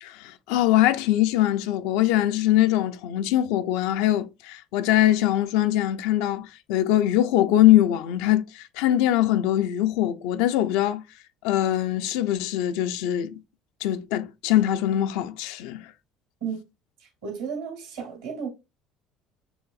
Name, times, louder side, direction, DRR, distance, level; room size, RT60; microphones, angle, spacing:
voice 1, 0.0-11.0 11.4-13.4 13.8-15.9, left 13 dB, 75° left, 0.4 m, -22 dB
voice 2, 17.0-18.5, right 6 dB, 80° right, 2.1 m, -33 dB
7.0 x 3.1 x 2.4 m
hypercardioid pair, 65°, 0 cm